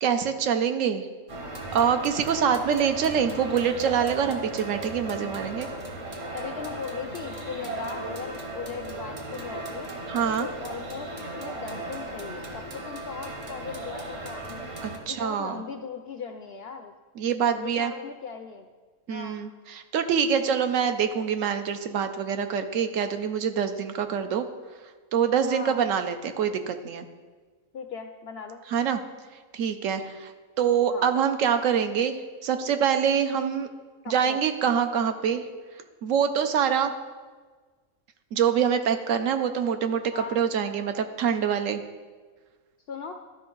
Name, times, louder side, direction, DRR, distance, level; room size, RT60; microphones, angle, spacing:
voice 1, 0.0-1.1 1.7-5.7 10.1-10.5 14.8-15.6 17.2-17.9 19.1-24.5 25.1-27.1 28.7-29.0 29.5-30.3 30.6-32.2 32.4-33.7 34.1-35.4 36.0-36.9 38.3-41.8, right 7 dB, 70° right, 8 dB, 0.9 m, -25 dB
sound 1, 1.3-15.0, right 2 dB, 50° right, 1.3 m, -36 dB
voice 2, 6.3-9.9 10.4-14.6 15.1-16.9 17.5-18.7 19.1-19.4 25.5-25.8 27.7-28.6 30.9-31.1 34.0-34.4 40.1-40.4 42.9-43.1, left 6 dB, 65° left, 5 dB, 0.6 m, -38 dB
13.0 x 5.2 x 3.8 m, 1.4 s
omnidirectional pair, 1.5 m